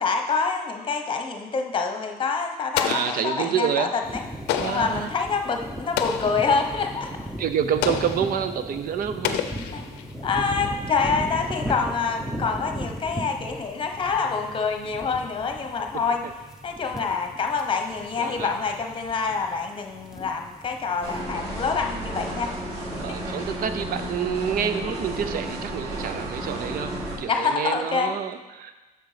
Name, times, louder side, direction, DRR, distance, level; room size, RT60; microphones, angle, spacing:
voice 1, 0.0-4.2 4.6-7.1 9.7-9.8 10.2-16.2 16.6-23.2 27.3-28.2, left 5 dB, 30° left, 4 dB, 1.0 m, -26 dB
Explosion, 2.7-3.7 4.5-5.0 6.0-6.5 7.8-8.4 9.2-10.1, left 9 dB, 85° left, 0.6 m, -29 dB
voice 2, 2.9-3.9 4.5-5.1 7.4-9.4 18.2-18.5 23.0-28.7, right 8 dB, 60° right, 10 dB, 0.6 m, -28 dB
sound 1, 4.0-21.2, equal, 5° right, 0.8 m, -37 dB
sound 2, 21.0-27.2, right 1 dB, 30° right, 2.8 m, -32 dB
6.6 x 6.1 x 5.0 m, 1.1 s
cardioid pair, 110°, 17 cm